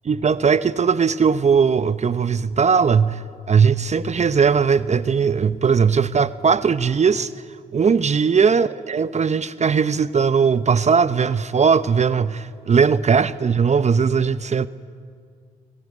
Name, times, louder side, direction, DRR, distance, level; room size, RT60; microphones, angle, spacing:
voice 1, 0.0-7.3 7.7-14.7, right 6 dB, 40° right, 14 dB, 0.8 m, -19 dB
24.5 x 21.5 x 9.6 m, 2.2 s
hypercardioid pair, 45°, 17 cm